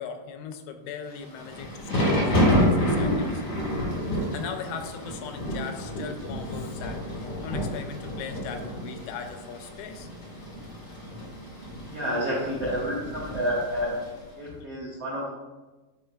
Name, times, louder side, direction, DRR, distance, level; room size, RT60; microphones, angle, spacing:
voice 1, 0.0-3.6 4.1-10.1 14.5-14.7, left 6 dB, 85° left, 6 dB, 2.8 m, -39 dB
Thunder / Rain, 1.2-14.2, equal, 50° left, 1.2 m, -29 dB
voice 2, 11.9-13.9 14.4-15.3, equal, 85° right, -7 dB, 1.3 m, -29 dB
8.7 x 5.0 x 2.3 m, 1.2 s
omnidirectional pair, 5.0 m